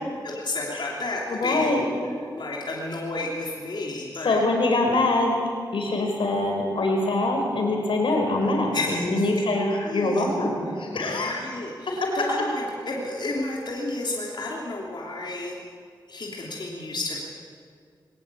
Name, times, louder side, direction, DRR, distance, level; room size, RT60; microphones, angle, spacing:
voice 1, 0.2-4.4 8.7-10.3 11.1-15.6 16.1-17.2, left 2 dB, 60° left, -3 dB, 3.2 m, -32 dB
voice 2, 1.3-1.8 4.2-5.4 5.7-9.6 9.9-11.3 12.0-12.2, left 2 dB, 90° left, 2 dB, 4.7 m, -24 dB
21.5 x 18.0 x 8.5 m, 2.2 s
wide cardioid pair, 85°, 9 cm